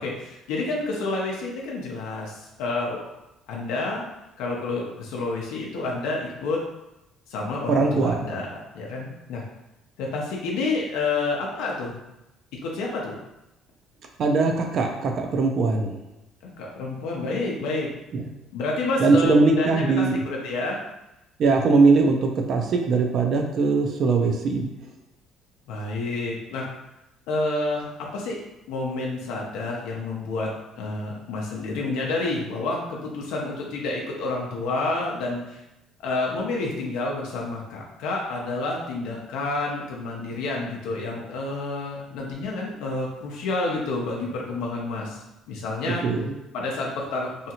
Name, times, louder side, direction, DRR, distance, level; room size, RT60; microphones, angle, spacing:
voice 1, 0.0-3.0 3.5-4.1 4.4-6.6 7.3-9.4 10.0-12.0 12.6-13.2 16.6-17.9 18.5-20.8 25.7-26.7 27.3-28.4 28.7-30.5 30.8-35.6 36.0-46.0 46.5-47.3, left 3 dB, 85° left, -2 dB, 0.5 m, -29 dB
voice 2, 7.7-8.2 14.2-16.0 18.1-18.3 19.0-20.2 21.4-24.7 45.9-46.3, right 3 dB, 45° right, 3 dB, 0.3 m, -21 dB
2.7 x 2.4 x 2.8 m, 0.92 s
cardioid pair, 160°, 0 cm